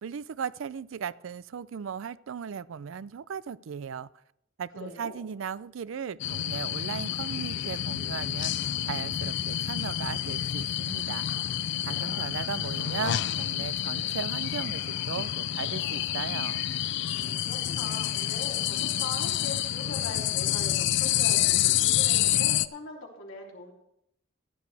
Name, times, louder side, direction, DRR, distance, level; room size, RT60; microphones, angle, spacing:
voice 1, 0.0-4.1 4.6-11.3 11.9-16.6, right 7 dB, 85° right, 19 dB, 0.4 m, -37 dB
voice 2, 4.7-5.2 17.2-23.7, left 3 dB, 90° left, -1 dB, 3.2 m, -41 dB
sound 1, 6.2-22.7, left 12 dB, 65° left, 0.4 m, -28 dB
15.0 x 10.5 x 3.4 m, 0.77 s
head